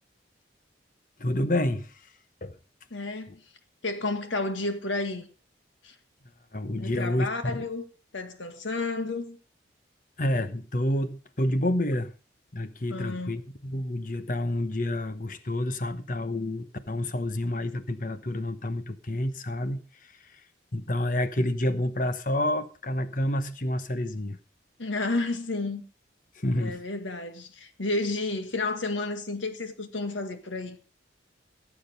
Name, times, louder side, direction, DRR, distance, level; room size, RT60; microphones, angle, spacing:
voice 1, 1.2-1.9 2.4-2.5 6.5-7.6 10.2-12.1 12.5-19.8 20.7-24.4 26.4-26.8, left 1 dB, 45° left, 1.0 m, -29 dB
voice 2, 2.9-3.4 3.8-5.3 5.8-6.0 6.8-7.8 8.1-9.4 12.9-13.4 24.8-25.8 26.6-30.8, left 2 dB, 90° left, 1.8 m, -31 dB
16.5 x 7.4 x 5.3 m
head